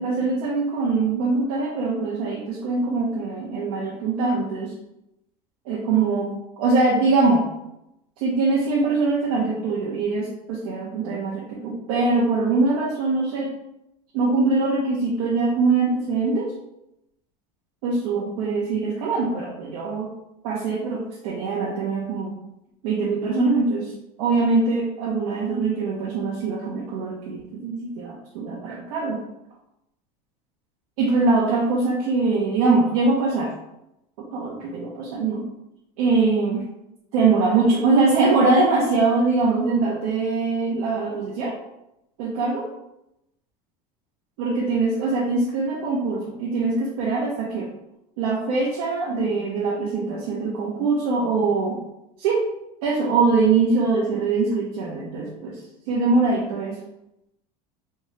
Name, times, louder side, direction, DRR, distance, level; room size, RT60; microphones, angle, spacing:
voice 1, 0.0-4.7 5.7-7.5 8.2-13.5 14.1-16.5 17.8-20.1 20.4-22.4 22.8-23.9 24.2-29.2 31.0-33.5 34.3-35.4 36.0-36.6 37.1-41.5 42.2-42.7 44.4-47.7 48.2-51.8 52.2-52.4 52.8-55.6 55.9-56.8, right 3 dB, 75° right, -4 dB, 0.9 m, -22 dB
3.4 x 2.8 x 3.2 m, 0.86 s
supercardioid pair, 115°, 19 cm